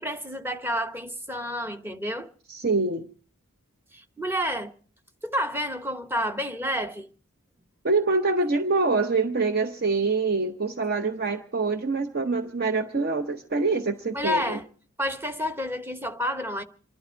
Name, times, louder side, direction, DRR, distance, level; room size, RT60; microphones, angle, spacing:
voice 1, 0.0-2.3 3.9-4.7 5.2-7.1 14.1-14.7 15.0-16.6, equal, 10° right, 0.9 m, -29 dB
voice 2, 2.5-3.1 7.8-14.6, right 3 dB, 45° right, 0.8 m, -25 dB
27.0 x 12.0 x 4.5 m
head